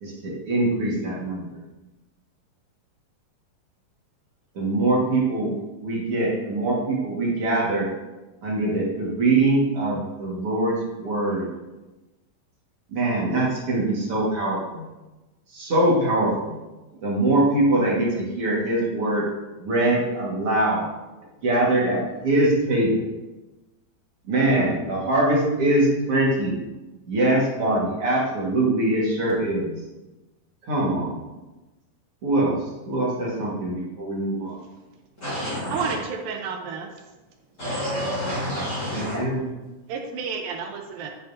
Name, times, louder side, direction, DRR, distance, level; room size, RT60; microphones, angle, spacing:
voice 1, 0.0-1.4 4.5-5.5 5.8-7.9 8.4-11.5 12.9-14.8 15.5-16.6 17.0-19.2 19.6-20.9 21.4-23.1 24.3-26.6 27.1-29.8 30.6-31.2 32.2-32.6 32.9-34.6 38.8-39.4, right 2 dB, 45° right, -5 dB, 2.3 m, -23 dB
voice 2, 35.2-35.9 37.6-39.2, equal, 35° left, -8 dB, 2.1 m, -28 dB
voice 3, 35.7-36.9 39.9-41.1, right 5 dB, 80° right, 3 dB, 2.5 m, -30 dB
10.0 x 8.5 x 2.7 m, 1.1 s
omnidirectional pair, 4.2 m